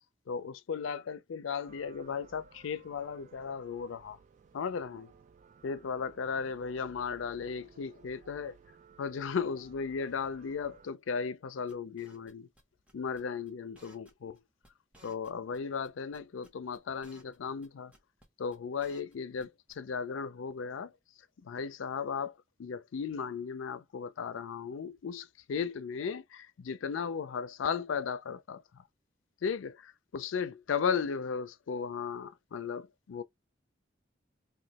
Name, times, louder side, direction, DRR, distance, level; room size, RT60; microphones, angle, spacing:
voice 1, 0.3-4.2 4.5-5.1 5.6-8.6 9.0-12.5 12.9-14.4 15.0-17.9 18.4-20.9 21.4-28.8 29.4-33.2, left 6 dB, 85° left, 0.4 m, -36 dB
sound 1, 1.7-10.9, right 5 dB, 40° right, 0.3 m, -58 dB
sound 2, 11.7-12.6 12.9-13.2 13.5-13.6 13.7-14.4 14.6-14.7 14.9-17.4 17.6-17.7 17.9-18.3 18.5-19.4 19.7-19.8, right 1 dB, 5° right, 0.8 m, -59 dB
3.0 x 2.2 x 4.0 m
head